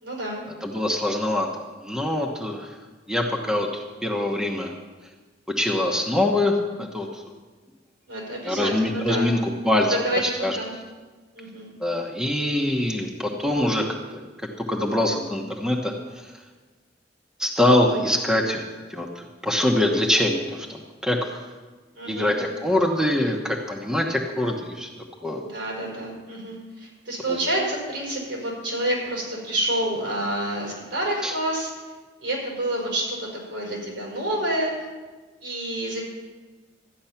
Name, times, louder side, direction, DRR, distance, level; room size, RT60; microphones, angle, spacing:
voice 1, 0.0-0.4 8.1-9.3 10.0-10.7 11.3-11.7 22.0-22.3 25.4-31.7 32.2-34.9 35.4-36.0, right 1 dB, 80° right, -3 dB, 5.1 m, -28 dB
voice 2, 0.6-1.5 1.8-2.7 3.1-4.7 5.6-7.2 8.4-10.6 11.8-13.8 14.7-16.3 17.4-18.6 18.9-21.4 22.1-24.9 25.2-25.5 27.3-27.4 31.2-31.3, left 1 dB, 5° right, 1 dB, 1.0 m, -24 dB
13.5 x 9.5 x 5.8 m, 1.3 s
head